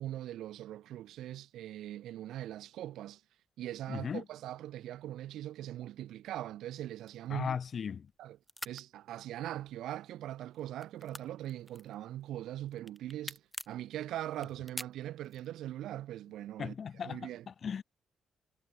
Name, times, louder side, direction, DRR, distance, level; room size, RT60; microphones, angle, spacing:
voice 1, 0.0-3.2 3.6-7.6 8.2-8.4 8.6-13.4 13.7-16.7 17.0-17.5, right 13 dB, 80° right, 3.0 m, -41 dB
voice 2, 3.9-4.2 7.3-8.1 16.6-17.8, left 7 dB, 50° left, 3.8 m, -37 dB
sound 1, 7.0-8.2 8.4-8.8 9.5-10.0 10.3-12.3 12.7-13.8 14.3-15.5, equal, 5° left, 3.1 m, -45 dB
cardioid pair, 90°, 0 cm